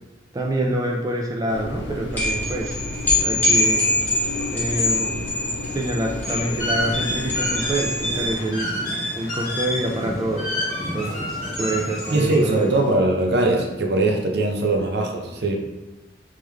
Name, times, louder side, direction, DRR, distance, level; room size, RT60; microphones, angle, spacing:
voice 1, 0.3-2.8 3.2-3.9 4.5-5.3 5.7-8.7 9.1-10.6 10.9-12.8, right 1 dB, 20° right, 0 dB, 0.3 m, -26 dB
sound 1, 1.5-8.4, left 1 dB, 85° left, 0.7 m, -33 dB
Bells at Temple, 2.1-12.8, left 2 dB, 10° left, 1.5 m, -26 dB
sound 2, 6.2-12.4, equal, 50° left, 1.5 m, -28 dB
voice 2, 12.1-15.6, right 2 dB, 65° right, 1 dB, 0.6 m, -21 dB
3.6 x 3.2 x 3.2 m, 1.1 s
head